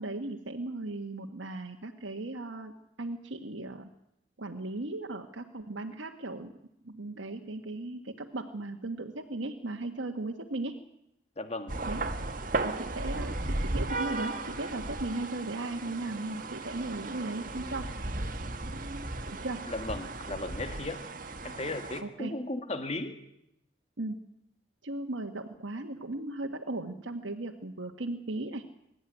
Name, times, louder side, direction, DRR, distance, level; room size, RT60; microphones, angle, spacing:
voice 1, 0.0-2.7 3.0-3.9 4.4-6.5 6.8-10.8 11.9-12.0 12.6-17.9 19.4-19.6 22.0-22.4 24.0-24.2 24.8-28.6, right 2 dB, 80° right, 3 dB, 1.5 m, -37 dB
voice 2, 11.3-11.7 19.7-21.0 21.4-23.1, left 2 dB, 35° left, 7 dB, 1.8 m, -36 dB
sound 1, 11.7-22.0, right 2 dB, 45° right, 1.6 m, -35 dB
24.5 x 13.5 x 9.9 m, 0.81 s
head